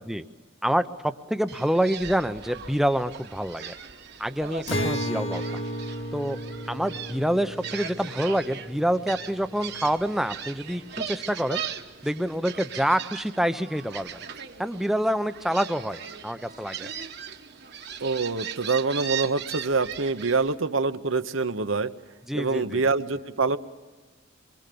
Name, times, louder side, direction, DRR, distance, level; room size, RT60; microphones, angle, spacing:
voice 1, 0.6-3.7 4.2-5.6 6.1-6.4 6.7-11.6 12.0-14.2 14.6-16.9 22.3-22.9, equal, ahead, 10 dB, 0.7 m, -27 dB
Gull seagull, 1.5-20.5, right 8 dB, 50° right, 1.3 m, -39 dB
Acoustic guitar, 4.7-10.1, equal, 60° left, 2.8 m, -34 dB
voice 2, 18.0-21.9 22.3-23.6, right 4 dB, 70° right, 11 dB, 1.0 m, -25 dB
25.5 x 23.5 x 6.9 m, 1.3 s
head